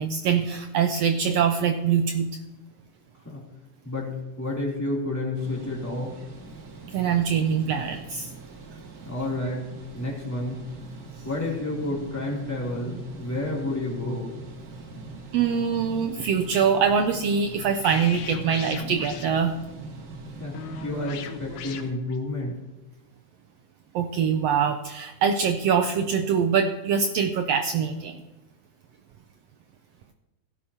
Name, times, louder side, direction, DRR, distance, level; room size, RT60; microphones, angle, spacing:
voice 1, 0.0-2.3 6.9-8.3 15.3-19.5 23.9-28.2, right 7 dB, 80° right, 6 dB, 1.5 m, -24 dB
voice 2, 3.8-6.2 9.0-9.7 9.9-10.6 11.2-14.3 20.4-22.6, left 2 dB, 5° left, -4 dB, 2.7 m, -30 dB
sound 1, 5.3-21.9, right 3 dB, 60° right, 2.7 m, -42 dB
sound 2, 16.4-16.8 17.8-19.3 20.5-22.2, left 8 dB, 75° left, 2.0 m, -39 dB
17.0 x 10.5 x 2.9 m, 1.1 s
omnidirectional pair, 3.5 m